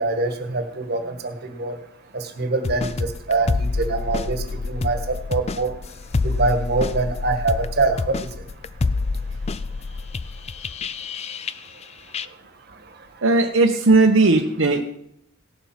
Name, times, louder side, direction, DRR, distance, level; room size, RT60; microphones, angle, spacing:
voice 1, 0.0-1.8 2.1-5.7 6.2-8.3, right 3 dB, 50° right, 6 dB, 1.5 m, -24 dB
sound 1, 2.6-11.8 12.1-12.3, left 3 dB, 30° left, 0.4 m, -27 dB
voice 2, 13.2-14.8, right 3 dB, 65° right, 2 dB, 0.9 m, -17 dB
17.5 x 7.2 x 5.8 m, 0.76 s
head